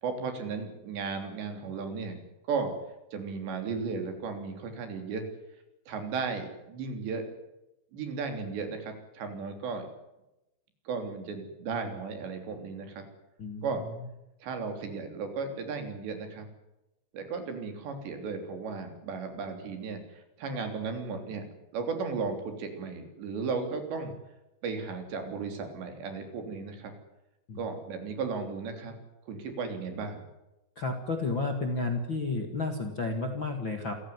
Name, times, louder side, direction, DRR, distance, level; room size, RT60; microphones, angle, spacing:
voice 1, 0.0-2.2 2.5-2.7 3.1-5.2 5.9-7.2 7.9-9.9 10.9-13.0 13.6-13.8 14.4-16.5 17.1-21.4 21.7-24.1 24.6-26.9 27.6-29.0 29.3-30.2, right 4 dB, 75° right, 6 dB, 5.6 m, -35 dB
voice 2, 13.4-13.7 14.0-14.1 27.5-27.6 30.8-33.9, left 3 dB, 40° left, 4 dB, 1.7 m, -32 dB
27.5 x 15.5 x 9.6 m, 0.94 s
omnidirectional pair, 5.0 m